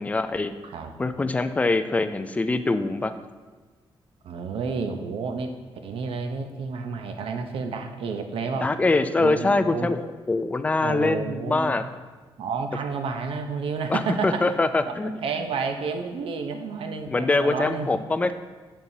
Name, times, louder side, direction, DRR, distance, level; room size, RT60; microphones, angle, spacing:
voice 1, 0.0-0.5 1.0-3.1 8.6-11.8 13.9-15.2 17.1-18.3, left 3 dB, 15° left, 10 dB, 0.3 m, -24 dB
voice 2, 4.2-5.5 5.8-8.7 9.2-9.9 10.8-11.9 12.4-14.5 14.8-17.9, right 5 dB, 75° right, 6 dB, 0.7 m, -30 dB
7.2 x 6.8 x 2.7 m, 1.4 s
wide cardioid pair, 135°, 10 cm